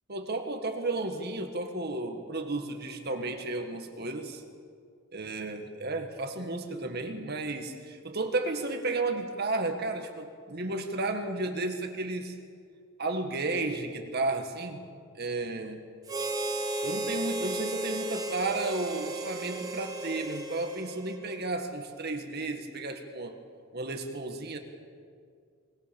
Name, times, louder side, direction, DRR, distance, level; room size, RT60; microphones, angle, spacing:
voice 1, 0.1-4.4 5.1-12.4 13.0-14.8 15.2-15.8 16.8-23.4 23.7-24.6, right 2 dB, 50° right, 5 dB, 1.9 m, -33 dB
Harmonica, 16.1-21.6, right 2 dB, 20° right, 2.8 m, -34 dB
23.0 x 20.0 x 7.2 m, 2.2 s
head